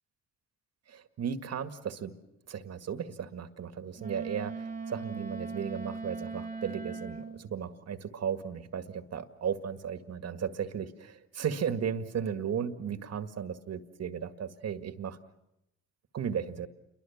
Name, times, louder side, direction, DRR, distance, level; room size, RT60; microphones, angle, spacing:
voice 1, 0.9-2.1 2.5-15.2 16.1-16.7, right 7 dB, 55° right, 9 dB, 1.9 m, -35 dB
Wind instrument woodwind instrument, 4.0-7.4, right 4 dB, 25° right, 1.6 m, -39 dB
29.0 x 23.0 x 7.3 m, 0.87 s
cardioid pair, 90°, 30 cm